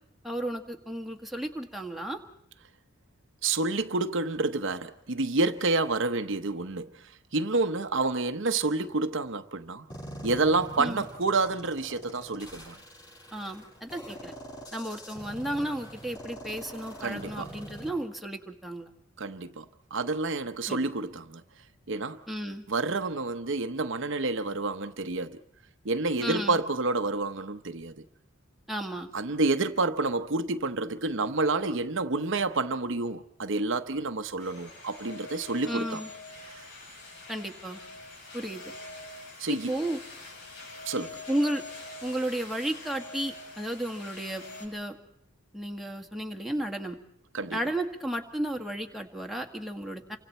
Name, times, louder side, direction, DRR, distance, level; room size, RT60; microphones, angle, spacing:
voice 1, 0.2-2.2 10.8-11.1 13.3-14.3 14.7-18.9 20.7-20.9 22.3-22.6 26.2-26.6 28.7-29.1 35.7-36.1 37.3-37.8 38.3-38.6 39.5-40.0 41.3-41.6 42.0-45.0 45.5-47.0 47.5-50.2, right 1 dB, ahead, 1.8 m, -33 dB
voice 2, 3.4-9.9 10.2-12.8 17.0-17.5 19.2-21.4 21.9-22.2 22.7-25.4 25.8-28.0 29.1-36.0 36.5-36.7 39.4-39.7 40.9-41.2 47.3-47.6, right 3 dB, 65° right, 0.9 m, -29 dB
sound 1, 9.9-17.9, equal, 20° left, 6.9 m, -44 dB
sound 2, 34.4-44.7, left 2 dB, 60° left, 7.6 m, -45 dB
29.0 x 25.0 x 4.4 m
head